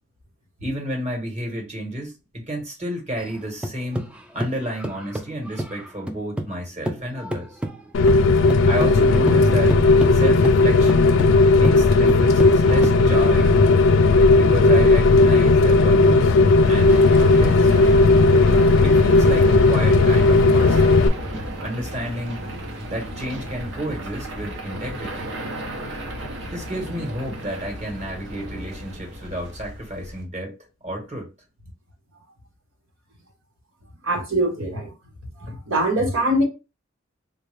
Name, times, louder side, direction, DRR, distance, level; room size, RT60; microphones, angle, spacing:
voice 1, 0.6-4.1 4.3-7.6 8.6-9.8 10.1-11.2 11.5-13.7 14.3-16.4 16.6-17.7 18.8-21.1 21.6-22.4 22.9-25.3 26.5-30.6 30.8-31.3, equal, 35° right, 1.1 m, -31 dB
sound 1, 3.2-6.6 6.8-13.5, right 1 dB, 5° right, 0.3 m, -31 dB
Rain, 7.9-21.1, left 3 dB, 75° left, 0.4 m, -15 dB
sound 2, 16.6-30.2, equal, 65° right, 0.8 m, -33 dB
voice 2, 34.0-34.9 35.4-36.4, right 1 dB, 85° right, 1.2 m, -22 dB
3.7 x 2.2 x 3.3 m
head